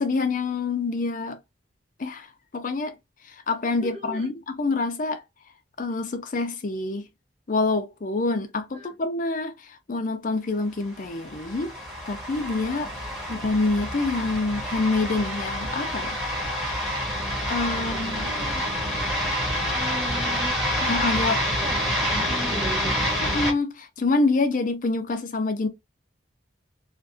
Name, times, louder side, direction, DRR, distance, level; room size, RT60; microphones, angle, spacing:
voice 1, 0.0-1.4 2.0-2.3 2.5-2.9 3.3-5.2 5.8-7.1 7.5-11.7 12.1-12.9 13.3-16.2 17.4-18.3 20.8-21.4 22.1-22.2 23.2-25.7, left 3 dB, 45° left, 0.5 m, -26 dB
voice 2, 3.8-4.3 8.7-8.9 13.0-13.1 17.8-19.0 19.7-20.5 21.6-23.0, right 1 dB, 30° right, 0.5 m, -37 dB
sound 1, 11.0-23.5, equal, ahead, 1.2 m, -28 dB
2.5 x 2.3 x 2.5 m
head